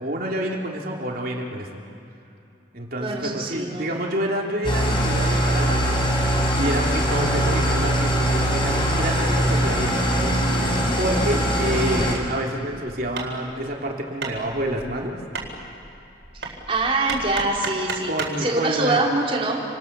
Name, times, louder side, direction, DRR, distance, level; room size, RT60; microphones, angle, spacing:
voice 1, 0.0-1.8 2.7-6.0 6.3-15.1 18.0-19.0, right 1 dB, 50° right, -1 dB, 3.2 m, -28 dB
voice 2, 3.0-3.9 16.4-18.1 18.4-19.6, right 2 dB, 30° right, -2 dB, 3.7 m, -24 dB
Engine starting / Idling, 4.6-12.1, equal, 25° left, 4.4 m, -22 dB
Hammer, 13.1-18.4, right 4 dB, 70° right, 4.2 m, -34 dB
29.5 x 25.5 x 6.9 m, 2.7 s
head